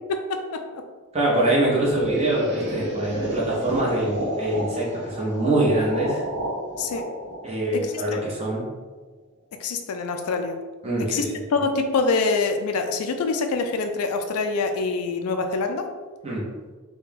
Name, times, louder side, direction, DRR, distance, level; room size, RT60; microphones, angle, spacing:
voice 1, 0.1-0.6 6.8-7.1 7.7-8.2 9.6-10.6 11.1-11.3 11.5-15.9, left 4 dB, 85° left, 6 dB, 0.4 m, -25 dB
voice 2, 1.1-6.2 7.4-8.6 10.8-11.3 16.2-16.4, right 1 dB, 30° right, -5 dB, 0.9 m, -24 dB
sound 1, 1.6-8.5, equal, 55° right, 0.7 m, -31 dB
3.2 x 2.3 x 3.5 m, 1.3 s
head